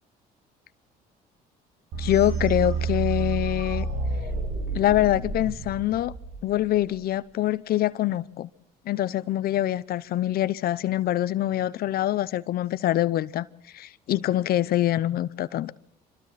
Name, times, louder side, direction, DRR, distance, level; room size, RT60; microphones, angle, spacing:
sound 1, 1.9-6.8, right 4 dB, 80° right, 7.9 m, -30 dB
voice 1, 2.0-3.9 4.7-6.1 6.4-8.5 8.9-13.5 13.7-15.7, left 13 dB, 65° left, 0.8 m, -25 dB
27.5 x 25.5 x 4.2 m
cardioid pair, 110°, 17 cm